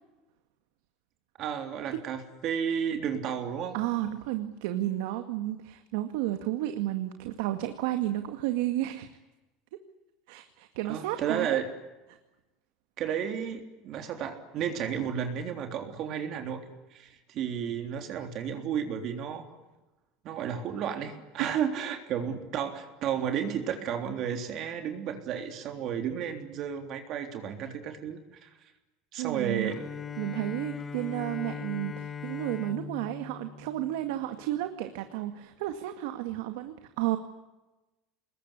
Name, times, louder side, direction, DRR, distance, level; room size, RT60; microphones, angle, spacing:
voice 1, 1.4-3.8 10.9-11.7 13.0-16.6 16.9-19.6 20.2-28.5 29.1-29.8, right 8 dB, 45° right, 6 dB, 3.6 m, -32 dB
voice 2, 3.7-9.1 10.3-11.6 21.4-21.5 29.2-29.7 30.2-37.2, right 14 dB, 80° right, 7 dB, 2.0 m, -32 dB
Bowed string instrument, 29.6-34.6, left 6 dB, 20° left, 1.4 m, -40 dB
26.0 x 21.0 x 9.9 m, 1.1 s
cardioid pair, 145°, 0 cm